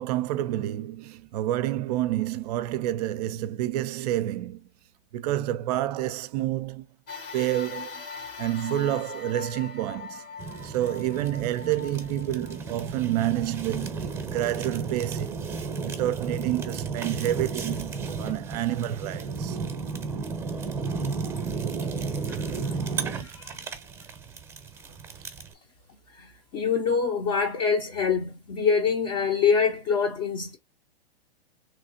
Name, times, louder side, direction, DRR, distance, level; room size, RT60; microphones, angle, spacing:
voice 1, 0.0-4.7 5.1-6.8 7.3-8.0 8.4-10.3 10.6-15.5 15.8-17.9 18.2-19.6, right 13 dB, 40° right, 0.5 m, -29 dB
sound 1, 7.1-15.7 16.3-16.4 17.5-17.6, left 5 dB, 60° left, 1.3 m, -42 dB
Fire, 10.4-25.5, right 5 dB, 10° right, 0.7 m, -33 dB
voice 2, 23.2-23.6 26.1-30.6, left 6 dB, 35° left, 0.7 m, -25 dB
3.3 x 3.2 x 2.6 m
hypercardioid pair, 125°, 31 cm